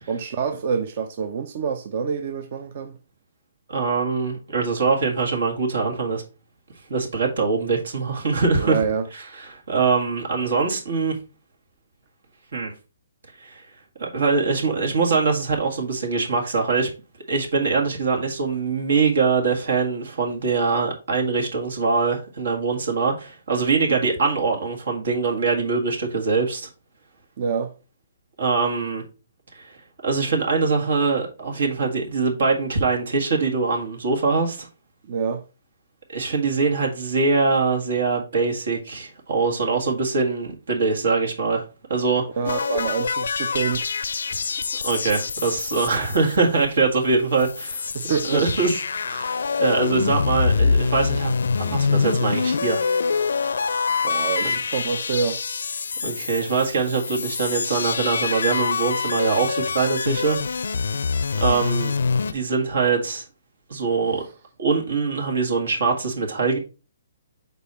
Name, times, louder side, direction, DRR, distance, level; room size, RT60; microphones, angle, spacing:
voice 1, 0.1-3.0 8.6-9.1 27.4-27.7 35.1-35.4 42.4-43.9 47.9-48.4 54.0-55.4, right 6 dB, 40° right, 0.5 m, -26 dB
voice 2, 3.7-6.2 6.9-8.8 9.1-11.2 12.5-12.7 13.4-13.6 14.0-16.9 17.3-26.7 28.4-29.0 29.6-29.7 30.0-34.7 36.1-41.6 41.9-42.3 44.3-44.4 44.8-47.9 48.2-48.8 49.1-52.9 53.3-53.6 54.4-54.6 56.0-60.4 61.4-61.9 62.3-63.2 63.7-64.2 64.6-66.6, right 4 dB, 70° right, 1.8 m, -23 dB
sound 1, 42.4-46.8 47.1-47.2 47.4-62.3, left 5 dB, 80° left, 0.4 m, -25 dB
5.4 x 4.1 x 4.3 m
hypercardioid pair, 165°, 0 cm